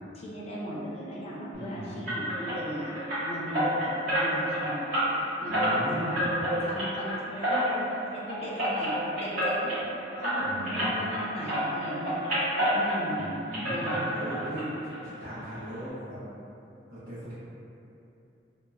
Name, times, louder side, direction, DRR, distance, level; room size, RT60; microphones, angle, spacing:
voice 1, 0.2-3.0 3.3-3.7 4.1-5.8 6.1-9.8 10.2-12.2 12.5-13.4 13.7-14.5, equal, 35° left, -6 dB, 0.4 m, -37 dB
voice 2, 1.5-2.3 5.5-6.5 10.4-11.0 13.1-16.2 16.9-17.3, equal, 80° right, -16 dB, 0.9 m, -38 dB
sound 1, 2.1-11.2 11.5-13.3 13.5-14.6 14.9-15.0 15.5-15.6 15.9-16.0, equal, 50° right, 1.2 m, -29 dB
2.8 x 2.2 x 2.2 m, 2.7 s
head